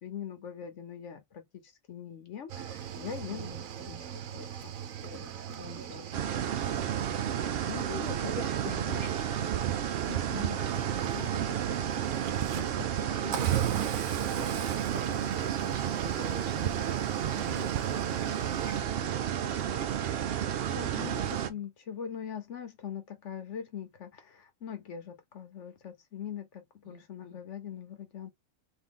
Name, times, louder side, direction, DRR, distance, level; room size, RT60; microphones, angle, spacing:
voice 1, 0.0-3.5 3.9-4.7 5.0-5.3 5.9-6.1 7.7-8.3 8.9-9.1 10.1-10.6 11.1-11.6 12.6-12.9 20.7-28.3, left 8 dB, 65° left, 1.1 m, -42 dB
Cricket / Waves surf, 2.5-18.8, right 10 dB, 85° right, 1.1 m, -38 dB
voice 2, 3.3-4.0 5.6-7.7 8.3-9.5 12.9-19.9 20.6-21.7 26.8-27.4, right 2 dB, 40° right, 1.4 m, -46 dB
sound 1, 6.1-21.5, right 10 dB, 60° right, 0.6 m, -32 dB
3.6 x 2.8 x 3.7 m
omnidirectional pair, 1.4 m